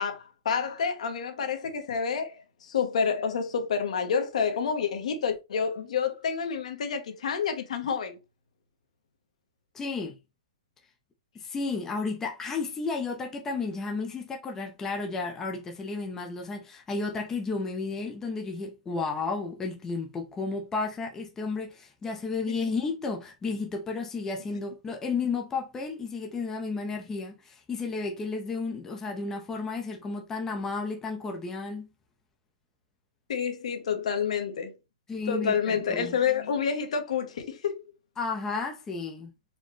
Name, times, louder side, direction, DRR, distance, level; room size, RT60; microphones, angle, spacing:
voice 1, 0.0-8.2 22.5-22.6 33.3-34.8 35.3-37.8, left 6 dB, 70° left, 1.0 m, -29 dB
voice 2, 9.7-10.2 11.3-31.9 35.1-36.2 38.2-39.3, left 4 dB, 10° left, 0.6 m, -32 dB
4.3 x 2.3 x 3.1 m
hypercardioid pair, 145°, 4 cm